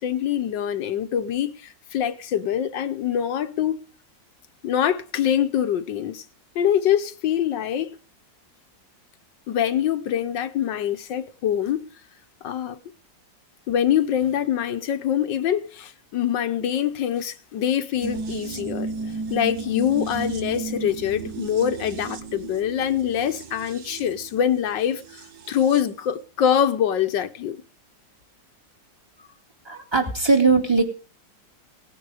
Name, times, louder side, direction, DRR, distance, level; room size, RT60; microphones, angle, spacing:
voice 1, 0.0-3.8 4.6-6.2 6.5-7.9 9.5-11.9 12.4-12.8 13.7-18.9 19.3-27.6, left 9 dB, 80° left, 1.6 m, -24 dB
sound 1, 18.0-25.9 26.2-26.3, right 4 dB, 65° right, 1.6 m, -34 dB
voice 2, 29.6-30.8, right 4 dB, 15° right, 2.5 m, -19 dB
18.0 x 9.7 x 4.9 m
omnidirectional pair, 2.0 m